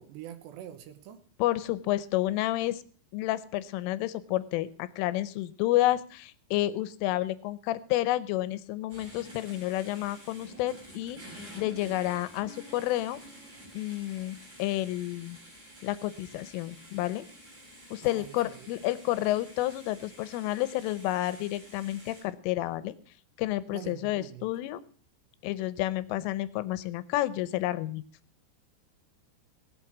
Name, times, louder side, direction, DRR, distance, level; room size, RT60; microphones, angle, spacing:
voice 1, 0.0-1.2 18.0-18.7 23.7-24.5, right 11 dB, 75° right, 9 dB, 3.0 m, -45 dB
voice 2, 1.4-2.8 3.1-11.2 11.5-13.2 13.7-15.4 15.8-17.3 17.9-23.0 23.4-24.8 25.4-28.0, left 15 dB, 85° left, 16 dB, 3.4 m, -30 dB
sound 1, 8.9-22.2, equal, 20° right, 5.7 m, -50 dB
18.5 x 8.4 x 6.0 m, 0.42 s
omnidirectional pair, 5.6 m